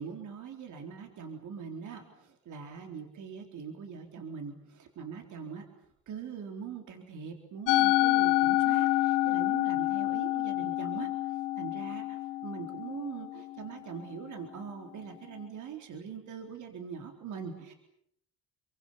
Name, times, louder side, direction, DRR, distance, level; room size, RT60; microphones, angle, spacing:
voice 1, 0.0-5.6 6.1-17.7, right 6 dB, 55° right, 4 dB, 4.1 m, -42 dB
Musical instrument, 7.7-14.1, left 17 dB, 80° left, 2.4 m, -28 dB
29.5 x 24.0 x 7.2 m, 0.71 s
hypercardioid pair, 65°, 35 cm